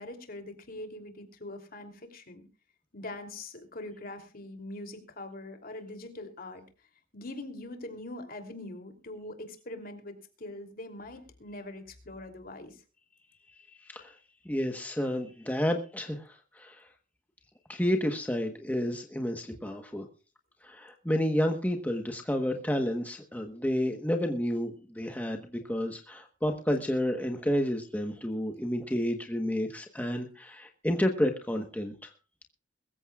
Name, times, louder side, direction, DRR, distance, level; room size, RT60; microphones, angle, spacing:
voice 1, 0.0-2.4 2.9-6.6 7.1-12.8, left 2 dB, 50° left, 6 dB, 3.0 m, -43 dB
voice 2, 13.8-14.2 14.4-16.9 17.7-20.1 20.6-25.4 25.7-32.1, equal, 10° left, 4 dB, 1.2 m, -30 dB
22.0 x 14.5 x 2.4 m, 0.34 s
head